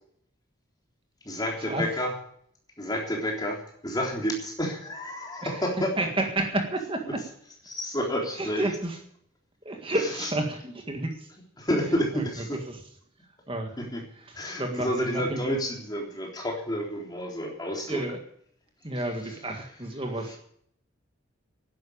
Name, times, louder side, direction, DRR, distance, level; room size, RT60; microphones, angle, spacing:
voice 1, 1.3-2.1 2.8-5.9 7.7-8.6 10.2-10.3 11.6-12.5 13.8-14.0 14.3-18.0, equal, 20° left, 0 dB, 3.6 m, -30 dB
voice 2, 5.4-7.2 8.4-9.0 9.7-11.3 12.1-12.3 12.7-12.8 13.5-13.8 14.3-15.5 17.9-18.2 18.8-20.4, right 1 dB, 25° right, 4 dB, 1.9 m, -31 dB
12.0 x 10.5 x 8.7 m, 0.66 s
head